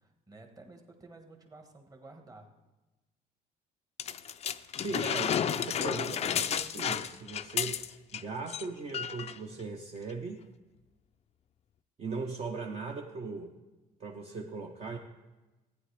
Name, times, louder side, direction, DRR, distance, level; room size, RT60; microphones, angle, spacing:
voice 1, 0.0-2.5, right 2 dB, 20° right, 4 dB, 1.3 m, -52 dB
sound 1, 4.0-8.2 8.5-8.7 8.9-9.4 10.1-10.2, left 8 dB, 40° left, 0.4 m, -32 dB
voice 2, 4.7-7.8 8.1-10.4 12.0-13.5 14.0-15.0, right 3 dB, 40° right, 1 dB, 0.8 m, -38 dB
14.0 x 9.0 x 3.3 m, 1.1 s
cardioid pair, 110°, 17 cm